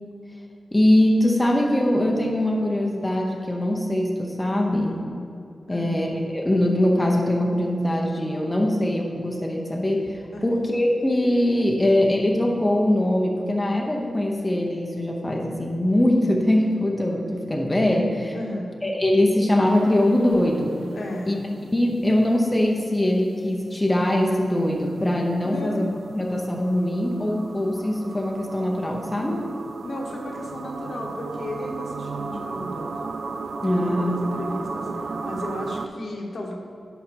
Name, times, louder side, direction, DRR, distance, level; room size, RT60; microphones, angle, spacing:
voice 1, 0.7-5.0 5.7-18.3 18.8-20.8 21.3-21.4 21.7-29.5 33.6-34.2, left 1 dB, 15° left, 0 dB, 0.9 m, -22 dB
voice 2, 5.7-6.1 10.3-10.5 18.3-18.7 20.9-21.4 25.4-25.8 29.8-32.9 33.8-36.5, left 1 dB, 65° left, 0 dB, 1.3 m, -33 dB
sound 1, 19.6-21.8 24.2-35.9, right 4 dB, 65° right, 0.4 m, -35 dB
10.5 x 5.0 x 4.6 m, 2.5 s
wide cardioid pair, 105°, 0 cm